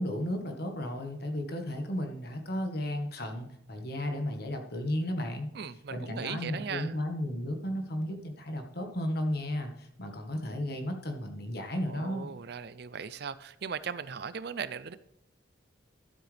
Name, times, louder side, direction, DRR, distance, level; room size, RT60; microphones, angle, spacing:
voice 1, 0.0-5.5 5.9-12.3, left 1 dB, 55° left, 5 dB, 1.4 m, -34 dB
voice 2, 5.5-7.0 11.9-15.0, right 6 dB, 55° right, 15 dB, 0.5 m, -38 dB
12.0 x 7.8 x 3.4 m, 0.75 s
head